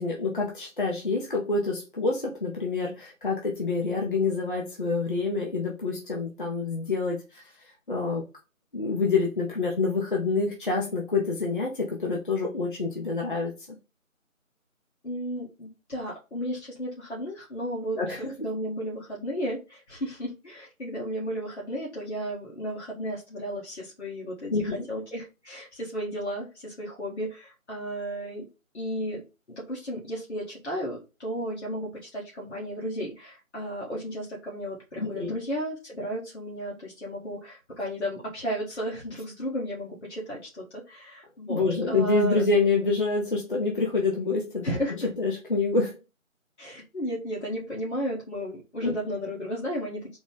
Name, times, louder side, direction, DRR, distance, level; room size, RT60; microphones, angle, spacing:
voice 1, 0.0-7.4 7.9-8.2 8.7-13.5 18.0-18.3 24.5-24.9 35.0-35.4 41.5-44.8 45.2-46.0 48.8-48.9, left 3 dB, 40° left, -2 dB, 0.8 m, -27 dB
voice 2, 15.0-28.5 28.7-29.2 29.5-42.4 44.6-45.1 46.6-50.2, equal, 55° left, -4 dB, 1.6 m, -34 dB
3.9 x 2.2 x 3.8 m, 0.28 s
figure-of-eight pair, 165°, 41 cm